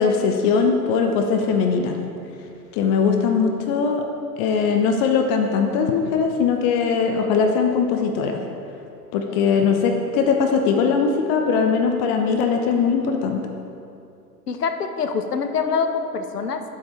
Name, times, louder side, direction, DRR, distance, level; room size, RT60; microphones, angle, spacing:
voice 1, 0.0-2.0 2.7-4.0 4.4-8.4 9.1-13.4, left 5 dB, 30° left, 4 dB, 0.9 m, -20 dB
voice 2, 14.5-16.6, left 5 dB, 70° left, 8 dB, 1.2 m, -25 dB
20.0 x 7.7 x 4.5 m, 2.7 s
figure-of-eight pair, 105°, 50 cm